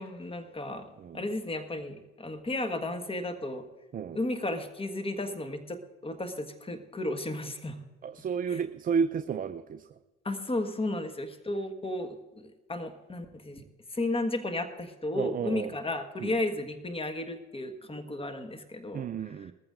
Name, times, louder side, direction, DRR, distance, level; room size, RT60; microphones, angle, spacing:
voice 1, 0.0-0.9 1.1-3.6 4.1-7.8 8.5-8.6 10.2-13.6 13.9-19.5, left 1 dB, 15° left, 7 dB, 1.5 m, -34 dB
voice 2, 8.0-9.8 15.1-15.7 16.2-16.3 18.9-19.5, right 6 dB, 25° right, 10 dB, 0.5 m, -31 dB
21.0 x 14.5 x 2.6 m, 1.2 s
hypercardioid pair, 60°, 34 cm